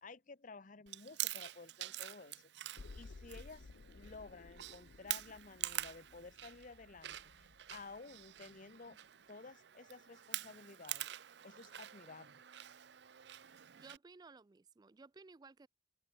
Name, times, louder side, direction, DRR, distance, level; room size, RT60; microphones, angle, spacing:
voice 1, 0.0-2.5 2.9-9.0 9.3-11.1 11.4-12.4, left 3 dB, 45° left, 0.9 m, -54 dB
Chewing mastication, 0.9-14.0, right 14 dB, 70° right, 0.6 m, -46 dB
sound 1, 2.8-8.7 9.1-9.2, left 3 dB, 75° left, 0.6 m, -57 dB
voice 2, 13.7-15.7, right 4 dB, 20° right, 0.4 m, -57 dB
open air
head